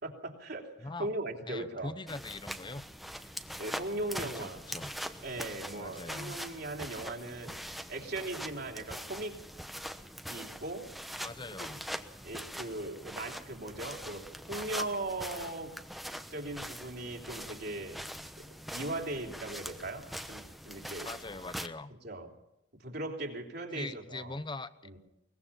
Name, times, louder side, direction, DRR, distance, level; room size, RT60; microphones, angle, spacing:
voice 1, 0.0-1.9 3.6-4.6 5.2-7.6 7.9-9.4 10.3-10.9 11.6-11.7 12.2-15.7 16.3-18.0 18.4-21.1 22.0-22.3 22.8-24.3 24.8-25.0, right 2 dB, 60° right, 1 dB, 3.4 m, -39 dB
voice 2, 0.8-1.2 1.5-2.9 4.2-4.9 5.7-6.4 11.2-11.8 21.0-21.9 23.7-24.7, left 2 dB, 25° left, 13 dB, 0.9 m, -42 dB
sound 1, 2.1-21.7, equal, ahead, 1.0 m, -43 dB
22.5 x 20.0 x 5.7 m, 0.86 s
head